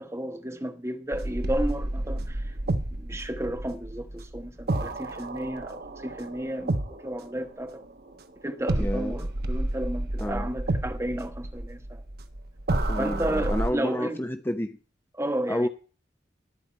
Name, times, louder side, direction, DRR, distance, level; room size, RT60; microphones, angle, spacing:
voice 1, 0.0-2.5 2.9-7.8 8.4-12.0 13.0-14.2 15.1-15.7, right 1 dB, 15° right, 1.2 m, -32 dB
sound 1, 1.1-8.2 8.7-13.7, right 1 dB, 60° right, 1.1 m, -30 dB
voice 2, 8.7-9.3 10.2-10.5 12.9-14.8 15.5-15.7, left 1 dB, 10° left, 0.7 m, -30 dB
13.5 x 5.0 x 8.6 m
head